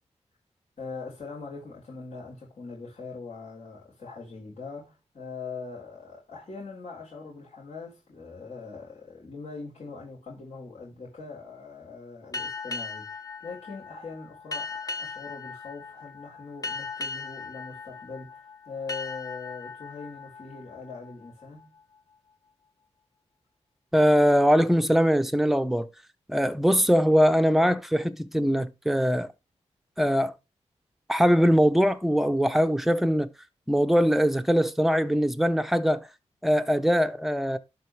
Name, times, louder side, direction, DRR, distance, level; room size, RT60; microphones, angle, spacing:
voice 1, 0.8-21.7, left 4 dB, 55° left, 3.9 m, -42 dB
sound 1, 12.3-21.6, left 4 dB, 30° left, 1.3 m, -38 dB
voice 2, 23.9-25.9 26.3-29.3 30.0-30.3 31.1-33.3 33.7-36.1 36.4-37.6, equal, ahead, 0.7 m, -22 dB
11.5 x 4.2 x 3.2 m
wide cardioid pair, 95°, 12 cm